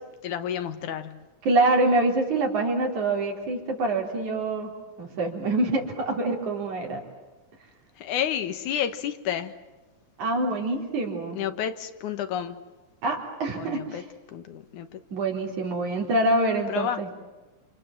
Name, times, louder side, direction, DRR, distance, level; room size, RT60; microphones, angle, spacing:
voice 1, 0.2-1.3 8.0-9.5 11.4-12.6 13.5-14.0 14.3-15.0 16.7-17.0, left 9 dB, 90° left, 2.8 m, -30 dB
voice 2, 1.4-4.7 5.0-7.0 10.2-11.4 13.0-14.0 15.1-17.1, right 2 dB, 75° right, 5.4 m, -25 dB
28.5 x 28.0 x 7.4 m
omnidirectional pair, 3.4 m